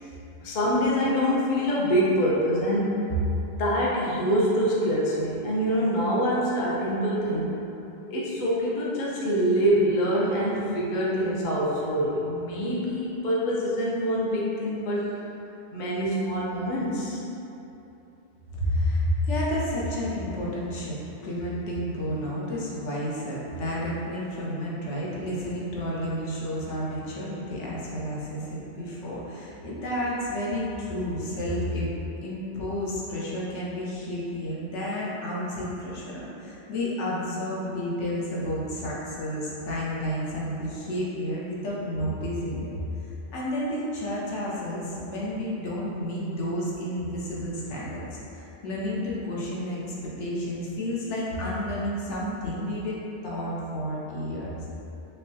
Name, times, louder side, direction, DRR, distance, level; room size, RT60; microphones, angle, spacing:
voice 1, 0.4-7.6 8.1-15.1 15.7-17.2, equal, 50° left, -5 dB, 0.7 m, -25 dB
voice 2, 18.5-31.9 32.2-53.0 53.2-54.7, equal, 85° left, -6 dB, 1.0 m, -31 dB
5.3 x 2.1 x 2.7 m, 3.0 s
omnidirectional pair, 1.2 m